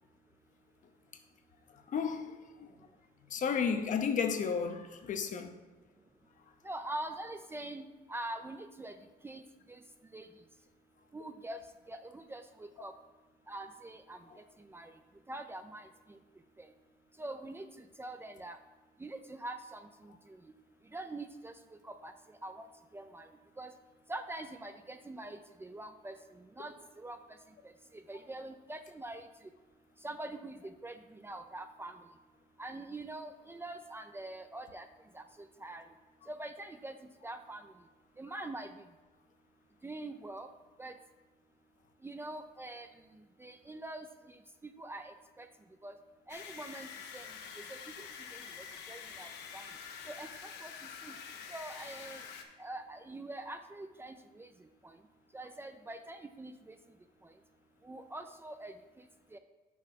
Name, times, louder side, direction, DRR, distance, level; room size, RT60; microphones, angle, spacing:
voice 1, 1.9-2.7 3.3-5.6 38.4-38.5, left 6 dB, 50° left, 0.8 m, -33 dB
voice 2, 6.6-8.9 9.2-9.4 9.7-9.8 10.1-10.3 11.1-11.6 11.9-12.9 13.5-14.9 15.3-16.2 16.6-16.7 17.2-18.6 19.0-20.4 20.9-21.5 21.8-22.7 22.9-23.3 23.6-23.7 24.1-27.2 27.6-29.3 30.0-32.0 32.6-34.9 35.1-35.8 36.3-37.0 37.2-37.7 38.2-38.7 39.8-40.5 40.8-40.9 42.0-42.9 43.4-45.5 45.8-45.9 46.3-47.3 47.7-48.4 48.9-49.6 50.1-50.7 51.0-51.2 51.5-52.2 52.6-54.5 54.8-55.0 55.3-56.8 57.2-57.3 57.8-59.0 59.3-59.4, right 2 dB, 15° right, 0.4 m, -44 dB
sound 1, 46.3-52.4, left 6 dB, 80° left, 0.9 m, -47 dB
6.2 x 4.7 x 5.9 m
cardioid pair, 110°, 17 cm